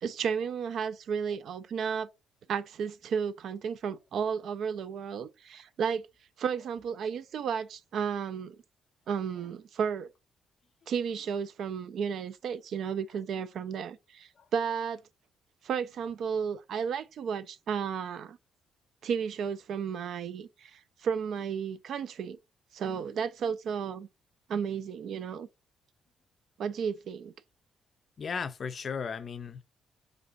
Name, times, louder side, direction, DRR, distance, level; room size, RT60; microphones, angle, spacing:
voice 1, 0.0-2.1 2.5-6.1 6.4-8.6 9.1-10.1 10.9-15.0 15.6-18.4 19.0-22.4 22.7-24.1 24.5-25.5 26.6-27.3, right 7 dB, 70° right, 0.4 m, -33 dB
voice 2, 28.2-29.6, left 6 dB, 45° left, 0.4 m, -36 dB
3.3 x 2.5 x 3.7 m
cardioid pair, 90°, 0 cm